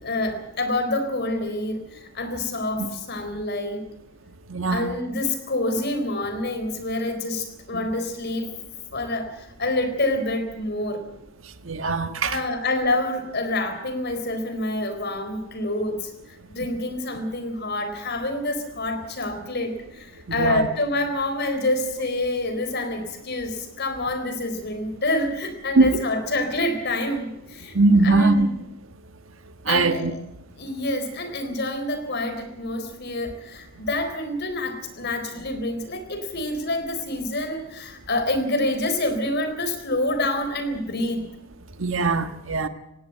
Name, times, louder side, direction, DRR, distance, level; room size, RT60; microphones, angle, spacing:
voice 1, 0.0-3.9 4.7-8.5 8.9-11.0 12.2-16.1 16.5-27.8 28.0-28.6 29.7-30.2 30.6-41.3, left 1 dB, 55° left, 4.0 m, -27 dB
voice 2, 4.5-4.9 11.6-12.4 20.4-20.7 25.8-25.9 27.7-28.5 29.7-30.1 41.8-42.7, right 3 dB, 75° right, 1.5 m, -20 dB
18.5 x 17.0 x 9.0 m
head